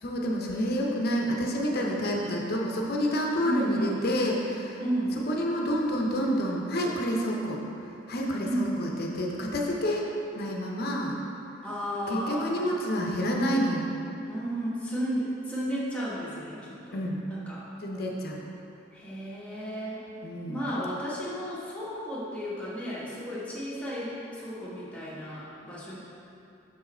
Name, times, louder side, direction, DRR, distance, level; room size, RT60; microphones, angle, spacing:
voice 1, 0.0-4.8 5.3-7.6 8.1-10.1 10.3-11.1 12.1-13.9 16.9-17.2 17.8-18.4 20.2-20.7, equal, 50° left, -1 dB, 0.7 m, -28 dB
voice 2, 3.4-4.0 4.8-5.2 8.4-8.7 11.6-12.5 14.3-17.0 17.3-17.6 18.9-20.0 20.5-26.0, equal, 5° left, -8 dB, 1.2 m, -33 dB
6.2 x 4.7 x 4.3 m, 2.9 s
head